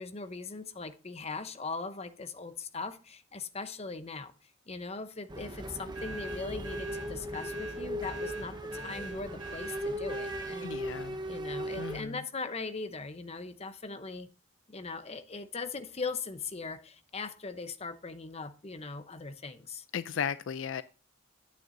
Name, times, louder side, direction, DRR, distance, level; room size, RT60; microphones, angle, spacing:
voice 1, 0.0-4.3 4.7-10.8 11.3-14.3 14.7-19.8, left 4 dB, 30° left, 0.7 m, -40 dB
sound 1, 5.3-12.0, equal, 20° right, 0.8 m, -38 dB
sound 2, 5.9-10.6, right 3 dB, 70° right, 1.8 m, -44 dB
voice 2, 10.6-11.2 11.7-12.2 19.9-20.8, left 7 dB, 65° left, 0.4 m, -35 dB
9.3 x 9.1 x 2.6 m
head